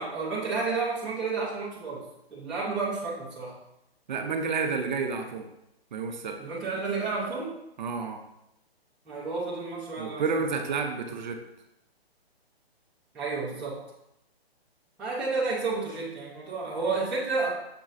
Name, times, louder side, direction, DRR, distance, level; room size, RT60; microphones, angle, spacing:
voice 1, 0.0-2.1 2.3-3.6 6.4-7.5 9.1-10.2 13.1-13.8 15.0-17.5, right 4 dB, 5° right, -10 dB, 0.5 m, -31 dB
voice 2, 4.1-5.5 5.9-6.4 7.8-8.2 10.0-11.4, right 5 dB, 45° right, 5 dB, 0.6 m, -30 dB
6.5 x 2.9 x 2.4 m, 0.84 s
hypercardioid pair, 140°, 31 cm